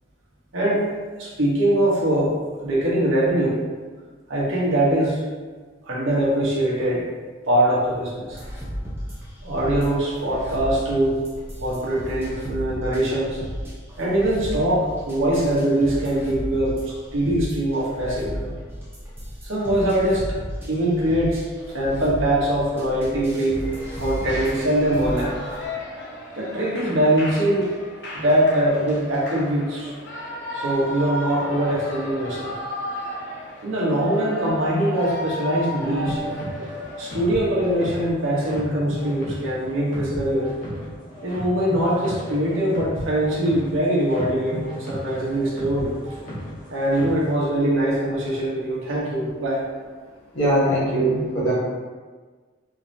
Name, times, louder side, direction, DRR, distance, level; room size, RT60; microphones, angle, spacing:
voice 1, 0.5-0.9 1.2-2.4 2.6-3.6 4.3-5.2 5.8-7.1 7.5-8.4 9.4-11.2 11.6-13.4 14.0-16.8 17.1-18.6 19.4-20.3 20.7-21.4 21.7-23.6 24.0-25.4 26.3-27.7 28.1-29.9 30.5-32.5 33.6-36.2 37.0-40.5 41.2-45.9 46.7-49.6, right 1 dB, 80° right, -5 dB, 1.1 m, -22 dB
sound 1, 8.3-25.7, equal, 10° right, 0.7 m, -34 dB
Shout / Cheering, 23.6-37.4, left 1 dB, 60° left, 0.7 m, -35 dB
sound 2, 36.0-47.3, equal, 40° left, 1.0 m, -35 dB
voice 2, 50.3-51.5, right 1 dB, 75° left, -6 dB, 1.3 m, -21 dB
3.8 x 3.1 x 2.7 m, 1.4 s
head